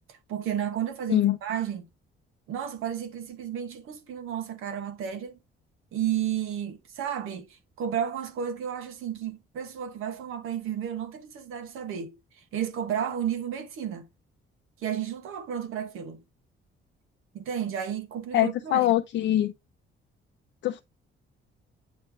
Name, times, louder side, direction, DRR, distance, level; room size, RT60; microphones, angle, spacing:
voice 1, 0.1-1.9 2.5-5.4 5.9-12.2 12.5-14.1 14.8-16.2 17.3-18.9 19.3-19.4, right 9 dB, 85° right, 1.3 m, -32 dB
voice 2, 18.3-19.5 20.6-20.8, left 13 dB, 60° left, 0.5 m, -23 dB
8.6 x 3.2 x 3.4 m
cardioid pair, 175°, 21 cm